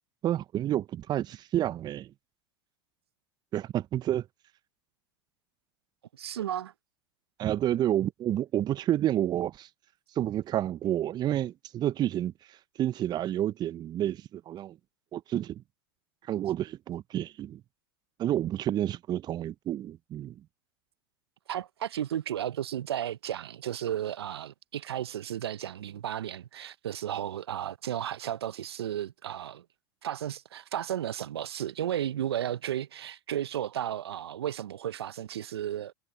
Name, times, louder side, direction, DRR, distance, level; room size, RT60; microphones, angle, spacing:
voice 1, 0.2-2.1 3.5-4.3 7.4-9.7 10.1-14.8 15.1-15.6 16.2-17.6 18.2-20.3, right 12 dB, 30° right, 0.6 m, -29 dB
voice 2, 6.1-6.7 21.5-29.6 30.0-35.9, right 11 dB, 75° right, 0.7 m, -34 dB
hypercardioid pair, 90°, 13 cm